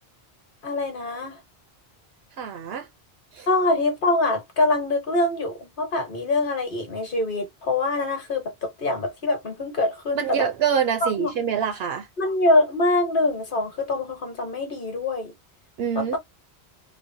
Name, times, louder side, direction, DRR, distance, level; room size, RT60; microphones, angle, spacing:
voice 1, 0.6-1.4 3.5-10.5 11.0-11.3 12.2-15.3 15.9-16.2, left 2 dB, 55° left, 1.2 m, -24 dB
voice 2, 2.4-2.9 3.3-3.5 10.2-12.1 15.8-16.2, right 8 dB, 70° right, 0.8 m, -25 dB
3.2 x 2.0 x 2.6 m
omnidirectional pair, 1.1 m